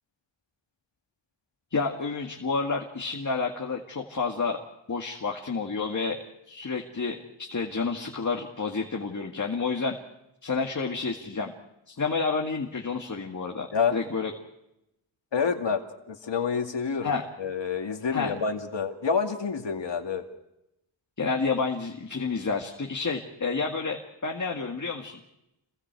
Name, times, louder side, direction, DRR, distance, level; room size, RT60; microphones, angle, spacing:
voice 1, 1.7-4.6 4.9-6.2 6.5-10.0 10.4-11.5 11.9-14.3 17.0-17.2 18.1-18.3 21.2-25.2, left 4 dB, 40° left, 1 dB, 2.0 m, -30 dB
voice 2, 15.3-17.1 17.4-20.3, left 6 dB, 60° left, 4 dB, 2.3 m, -28 dB
30.0 x 23.0 x 4.7 m, 0.86 s
wide cardioid pair, 140°, 47 cm